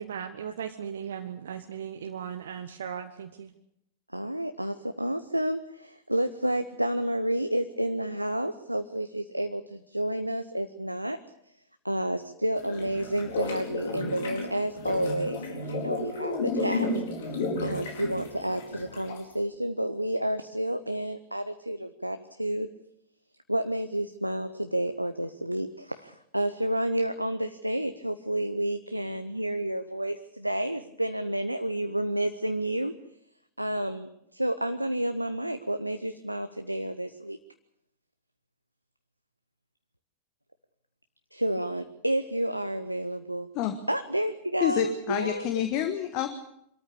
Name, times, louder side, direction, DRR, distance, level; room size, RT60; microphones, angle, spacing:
voice 1, 0.0-3.5, right 8 dB, 65° right, 7 dB, 1.1 m, -37 dB
voice 2, 4.1-11.2 11.8-16.9 17.6-22.7 23.5-32.9 33.6-37.4 41.3-43.5 43.9-45.5, right 1 dB, 90° right, 9 dB, 0.8 m, -30 dB
sound 1, 12.6-19.3, left 2 dB, 60° left, 4.5 m, -33 dB
voice 3, 44.6-46.3, left 11 dB, 40° left, 8 dB, 1.5 m, -28 dB
25.0 x 13.5 x 8.6 m, 0.75 s
figure-of-eight pair, 90°, 0 cm